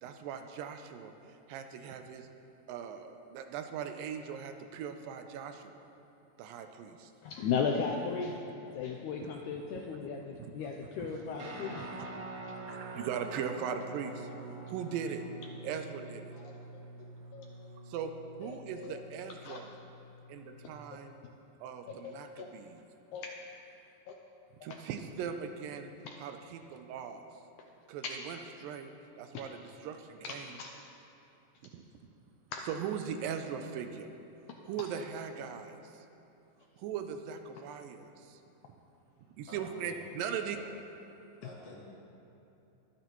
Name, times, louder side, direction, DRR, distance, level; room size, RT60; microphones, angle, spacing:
voice 1, 0.0-2.3 2.7-5.8 6.4-7.1 11.0-11.2 11.8-12.1 12.5-14.3 14.7-15.3 15.6-16.3 17.8-18.1 18.4-19.7 20.3-21.2 21.6-22.8 24.6-25.9 26.2-27.3 27.9-28.9 29.2-30.5 31.7-31.8 32.7-34.1 34.7-36.1 36.8-38.4 39.4-40.6, right 7 dB, 80° right, 7 dB, 2.2 m, -40 dB
voice 2, 7.2-8.4 8.7-11.9 12.7-12.9 16.3-16.6 17.0-17.5 18.4-19.0 19.4-19.6 22.0-22.5 23.1-23.3 24.1-24.2 24.6-24.8 26.0-26.2 28.0-28.1 30.2-30.7 32.5-32.6, left 5 dB, 85° left, 2 dB, 1.8 m, -36 dB
Guitar, 11.4-20.8, right 2 dB, 50° right, 1.8 m, -46 dB
voice 3, 39.5-40.0 40.5-40.6 41.3-41.7, left 2 dB, 45° left, -6 dB, 3.0 m, -50 dB
22.5 x 9.2 x 3.1 m, 2.9 s
omnidirectional pair, 4.1 m